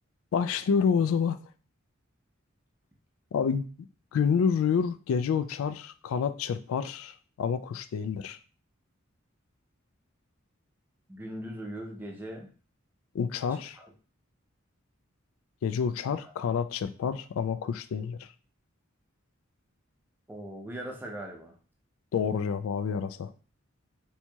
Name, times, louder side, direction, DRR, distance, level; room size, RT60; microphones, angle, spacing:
voice 1, 0.3-1.4 3.3-3.7 4.1-8.4 13.1-13.8 15.6-18.3 22.1-23.3, left 6 dB, 75° left, 0.3 m, -28 dB
voice 2, 11.1-12.5 13.7-13.9 20.3-21.5, right 1 dB, 10° right, 0.5 m, -39 dB
4.4 x 2.8 x 2.2 m
head